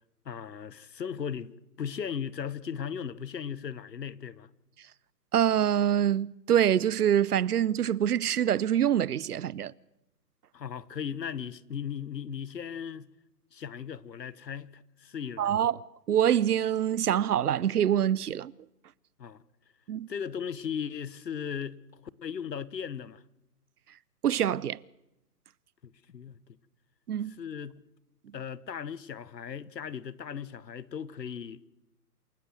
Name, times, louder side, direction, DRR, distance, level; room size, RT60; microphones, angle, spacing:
voice 1, 0.2-4.5 10.5-13.1 13.5-15.5 19.2-19.4 20.1-23.2 25.8-26.6 27.4-27.8 28.3-31.7, left 7 dB, 85° left, 1.1 m, -37 dB
voice 2, 5.3-9.7 15.4-15.8 16.1-18.5 19.9-20.1 24.2-24.8 27.1-27.4, right 10 dB, 70° right, 0.7 m, -25 dB
28.0 x 12.0 x 7.8 m
hypercardioid pair, 145°, 48 cm